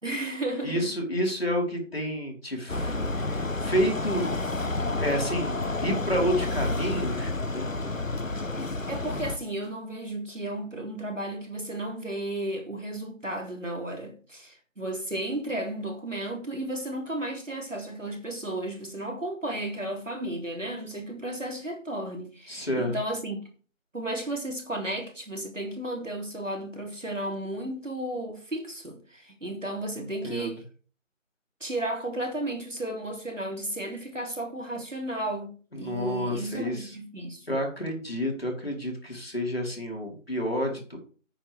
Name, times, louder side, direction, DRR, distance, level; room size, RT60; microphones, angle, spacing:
voice 1, 0.0-0.9 8.6-23.4 23.9-30.6 31.6-37.5, right 1 dB, 70° right, 3.6 m, -34 dB
voice 2, 0.6-4.3 4.9-7.7 22.5-23.0 29.9-30.5 35.7-36.9 37.5-41.0, equal, 50° left, 4.3 m, -30 dB
sound 1, 2.7-9.4, left 2 dB, 80° left, 1.3 m, -30 dB
11.0 x 8.9 x 3.5 m
figure-of-eight pair, 175°, 39 cm